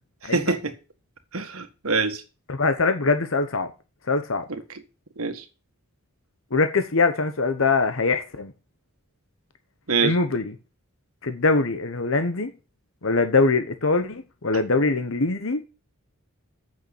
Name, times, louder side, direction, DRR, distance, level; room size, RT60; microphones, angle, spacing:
voice 1, 0.2-0.7 1.3-2.2 4.5-4.6 5.2-5.4 9.9-10.2, right 4 dB, 80° right, 1.7 m, -25 dB
voice 2, 2.5-3.7 4.1-4.4 6.5-8.5 10.0-10.5 11.2-12.5 13.0-15.6, left 3 dB, 70° left, 1.0 m, -22 dB
8.5 x 6.8 x 8.3 m
head